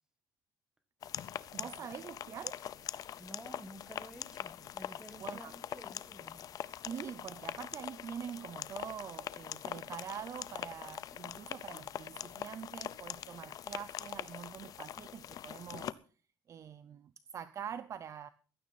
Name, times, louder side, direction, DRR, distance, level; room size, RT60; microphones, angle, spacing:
sound 1, 1.0-15.9, left 10 dB, 45° left, 0.5 m, -43 dB
voice 1, 1.5-2.6 5.2-5.5 6.8-16.0 16.5-18.3, right 8 dB, 35° right, 0.5 m, -45 dB
voice 2, 3.2-6.5, right 1 dB, 5° right, 1.7 m, -52 dB
15.5 x 12.5 x 4.2 m
cardioid pair, 175°, 9 cm